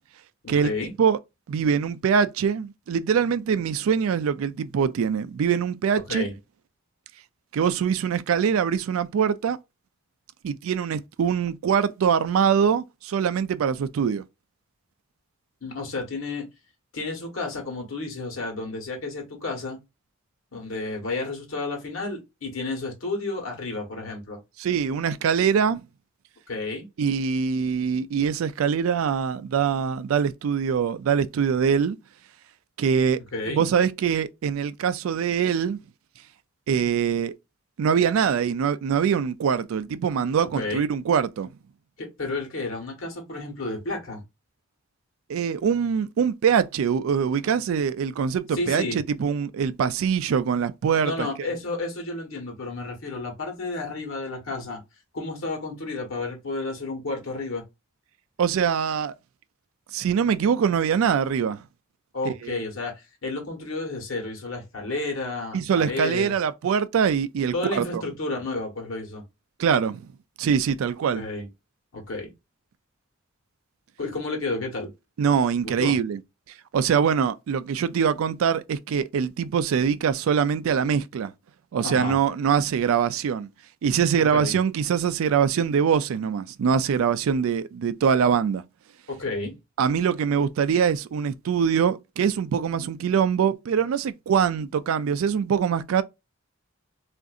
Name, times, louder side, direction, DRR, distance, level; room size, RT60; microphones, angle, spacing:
voice 1, 0.4-0.9 6.1-6.3 15.6-16.5 16.9-19.8 20.5-24.4 26.5-26.8 33.3-33.6 40.5-40.8 42.0-44.2 48.5-49.0 51.0-54.8 55.1-57.6 62.1-66.3 67.5-69.2 71.1-71.5 71.9-72.3 74.0-74.9 75.8-76.0 81.8-82.2 84.3-84.6 89.1-89.5, left 3 dB, 70° left, 1.1 m, -31 dB
voice 2, 1.5-6.3 7.5-9.6 10.4-14.2 24.6-25.8 27.0-32.0 32.8-33.2 33.5-35.8 36.7-37.3 37.8-41.5 45.3-51.5 58.4-59.1 59.9-61.6 62.2-62.6 65.5-68.0 69.6-70.0 70.4-71.2 75.2-76.2 76.7-81.3 81.7-83.5 83.8-88.6 89.8-96.0, right 7 dB, 75° right, 0.3 m, -23 dB
3.7 x 2.5 x 2.3 m
head